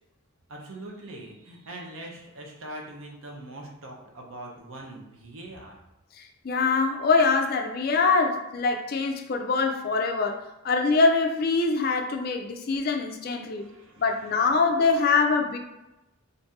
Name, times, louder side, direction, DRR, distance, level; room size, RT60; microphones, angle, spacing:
voice 1, 0.5-5.8 13.4-14.5, right 1 dB, 75° right, 0.7 m, -42 dB
voice 2, 6.2-10.4 10.6-13.7 14.0-15.6, left 4 dB, 45° left, 0.3 m, -24 dB
2.7 x 2.6 x 3.5 m
head